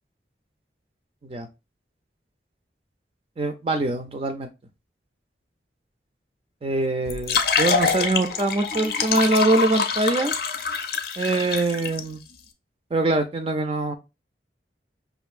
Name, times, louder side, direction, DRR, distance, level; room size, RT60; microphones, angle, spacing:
voice 1, 3.4-4.5 6.6-10.3 11.2-12.2 12.9-13.9, right 2 dB, 30° right, 7 dB, 0.4 m, -23 dB
sound 1, 7.1-12.0, left 5 dB, 60° left, 0.6 m, -25 dB
5.3 x 2.5 x 2.4 m, 0.25 s
head